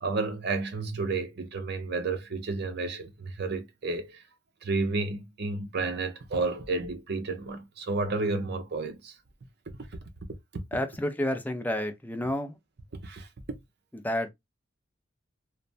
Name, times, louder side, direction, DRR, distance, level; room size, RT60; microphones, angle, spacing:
voice 1, 0.0-4.2 4.6-9.1 10.5-10.6 13.0-13.3, right 3 dB, 55° right, 0.6 m, -31 dB
voice 2, 10.7-12.5 13.9-14.3, left 1 dB, 10° left, 0.4 m, -30 dB
3.1 x 2.1 x 2.5 m
head